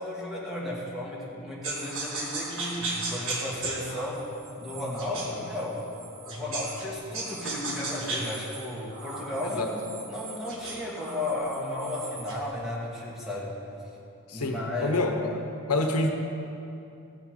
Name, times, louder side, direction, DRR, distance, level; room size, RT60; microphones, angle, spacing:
voice 1, 0.0-4.2 4.6-5.8 6.3-9.8 10.1-13.5 14.3-15.0, left 1 dB, ahead, -6 dB, 2.0 m, -34 dB
sound 1, 1.6-6.9 7.1-12.4, right 2 dB, 60° right, 1.7 m, -36 dB
voice 2, 14.3-15.3 15.7-16.1, left 2 dB, 90° left, 3 dB, 1.2 m, -27 dB
16.0 x 7.4 x 5.1 m, 2.7 s
head